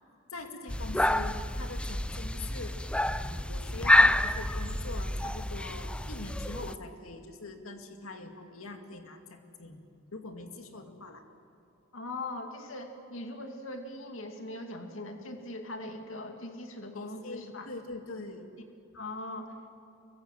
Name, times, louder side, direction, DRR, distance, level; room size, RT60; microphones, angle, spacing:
voice 1, 0.3-9.8 10.1-11.2 17.0-18.5, left 3 dB, 85° left, 5 dB, 2.2 m, -43 dB
sound 1, 0.7-6.8, left 1 dB, 5° left, 0.5 m, -28 dB
voice 2, 11.9-17.7 18.9-19.5, left 2 dB, 65° left, 4 dB, 2.5 m, -40 dB
26.0 x 23.5 x 7.7 m, 2.7 s
head